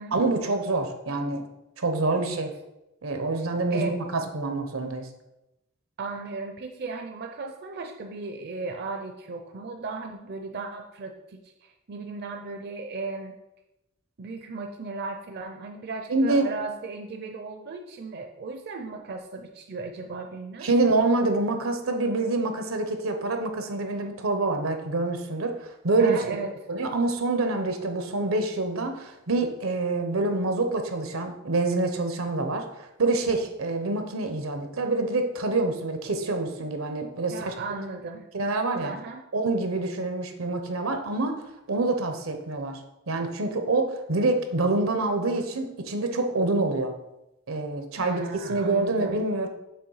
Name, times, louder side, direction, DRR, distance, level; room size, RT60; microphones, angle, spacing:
voice 1, 0.1-1.4 1.8-2.5 3.0-5.1 16.1-16.5 20.6-26.4 26.7-37.5 38.3-38.9 39.3-41.3 41.7-42.8 43.1-46.9 47.5-48.2 48.5-49.5, right 2 dB, 90° right, 6 dB, 0.9 m, -26 dB
voice 2, 2.1-2.4 3.7-4.0 6.0-13.3 14.2-20.7 26.0-26.5 37.3-38.3 38.8-39.2 48.0-49.2, right 3 dB, 50° right, 4 dB, 0.5 m, -36 dB
6.8 x 3.0 x 5.6 m, 0.91 s
head